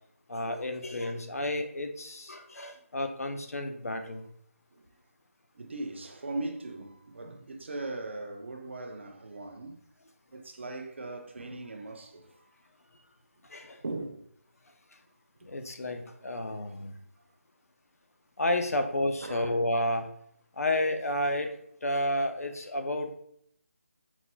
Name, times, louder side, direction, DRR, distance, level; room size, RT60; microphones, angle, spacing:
voice 1, 0.3-4.3 13.5-13.8 15.4-17.0 18.4-20.1 20.5-23.1, left 1 dB, 90° left, 0.7 m, -31 dB
voice 2, 5.5-9.8 10.3-12.5 13.8-14.3 15.8-16.0 16.3-16.4 18.7-18.8 19.2-19.5, right 2 dB, 55° right, 0.6 m, -39 dB
4.2 x 4.1 x 2.2 m
figure-of-eight pair, 170°, 8 cm